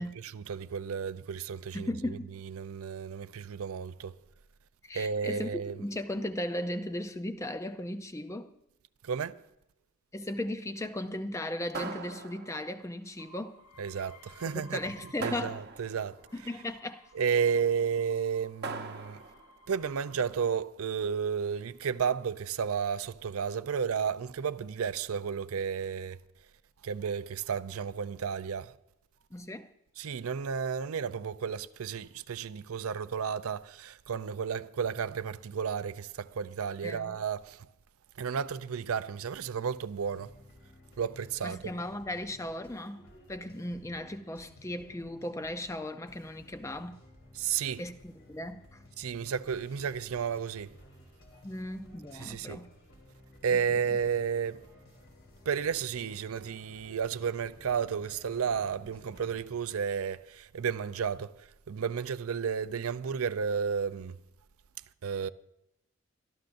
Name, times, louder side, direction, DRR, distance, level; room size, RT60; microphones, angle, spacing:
voice 1, 0.3-1.9 2.4-4.1 4.9-5.8 9.0-9.4 13.8-14.8 15.2-16.2 17.1-19.2 19.7-26.2 26.8-28.7 30.0-37.7 38.2-40.3 41.0-41.7 47.4-47.8 49.0-50.7 52.1-52.6 53.4-54.7 55.5-61.3 61.7-64.2 65.0-65.3, right 6 dB, 80° right, 0.5 m, -32 dB
voice 2, 1.7-2.4 4.8-8.6 10.1-13.6 14.5-15.6 16.3-17.0 29.3-29.7 36.8-37.2 41.4-43.0 43.3-47.0 47.8-48.8 51.4-52.7 53.5-53.6, left 1 dB, 15° left, 0.4 m, -37 dB
sound 1, 11.7-12.8 15.2-16.2 18.6-19.5, right 3 dB, 45° right, 0.9 m, -40 dB
sound 2, 13.2-15.7 16.1-20.6 21.4-21.9, left 1 dB, 90° left, 1.4 m, -57 dB
sound 3, 40.0-59.8, left 1 dB, 65° left, 3.5 m, -56 dB
25.0 x 13.0 x 2.6 m
head